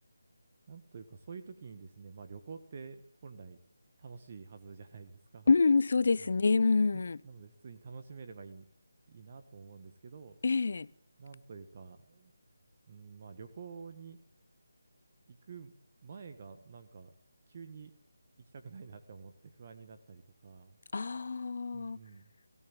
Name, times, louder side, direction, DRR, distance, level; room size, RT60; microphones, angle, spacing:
voice 1, 0.7-3.6 4.0-5.5 6.2-6.4 6.9-8.7 9.1-10.4 11.2-12.3 12.9-14.2 15.3-15.7 16.0-17.1 17.5-17.9 18.4-20.8 21.7-22.3, right 5 dB, 35° right, 1.6 m, -49 dB
voice 2, 5.5-7.2 10.4-10.9 20.9-22.0, left 4 dB, 55° left, 0.9 m, -27 dB
23.5 x 16.5 x 9.0 m
figure-of-eight pair, 165°, 0 cm